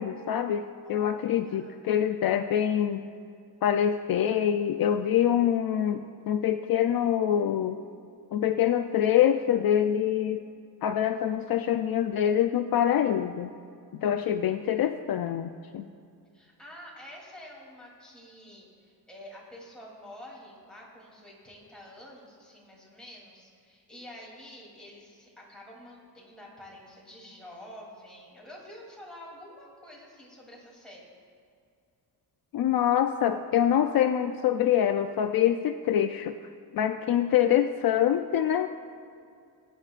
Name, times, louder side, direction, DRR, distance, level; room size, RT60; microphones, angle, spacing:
voice 1, 0.0-3.0 3.6-7.8 8.3-10.4 10.8-13.5 13.9-15.9 32.5-36.4 36.7-38.7, left 10 dB, 65° left, 7 dB, 0.5 m, -25 dB
voice 2, 0.8-1.8 16.3-31.0, left 1 dB, ahead, -5 dB, 2.9 m, -48 dB
20.5 x 10.0 x 2.5 m, 2.4 s
wide cardioid pair, 160°, 39 cm